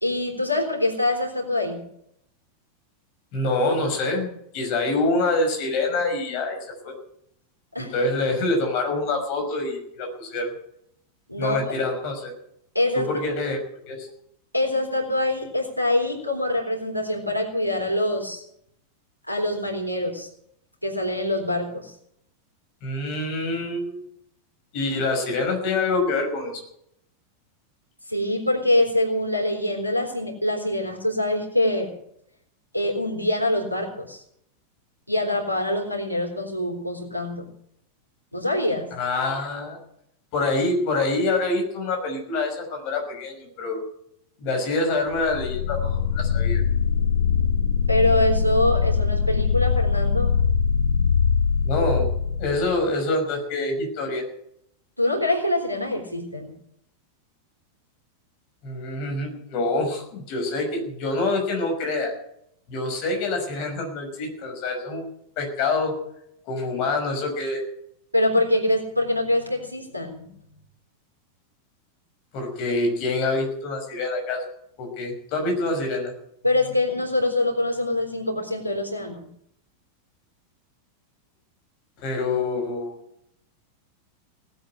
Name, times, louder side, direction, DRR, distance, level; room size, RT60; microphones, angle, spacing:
voice 1, 0.0-1.8 7.7-7.9 11.3-11.7 12.7-13.1 14.5-18.4 19.3-20.3 20.8-21.9 28.1-31.9 32.7-34.2 35.1-37.5 38.3-38.9 47.9-50.4 55.0-56.5 68.1-70.4 76.4-79.3, left 1 dB, 90° right, 2 dB, 3.7 m, -24 dB
voice 2, 3.3-6.6 6.8-6.9 7.8-10.5 11.4-12.3 12.9-14.1 22.8-24.0 24.7-26.6 38.9-39.8 40.3-43.8 44.4-46.6 51.6-52.1 52.4-54.2 58.6-62.1 62.7-65.1 65.4-65.9 66.5-67.6 72.3-74.4 74.8-76.1 82.0-83.0, left 2 dB, 45° left, 3 dB, 5.7 m, -26 dB
sound 1, 45.1-52.8, left 6 dB, 65° left, 1.1 m, -22 dB
18.0 x 8.3 x 8.8 m, 0.73 s
figure-of-eight pair, 90°, 0 cm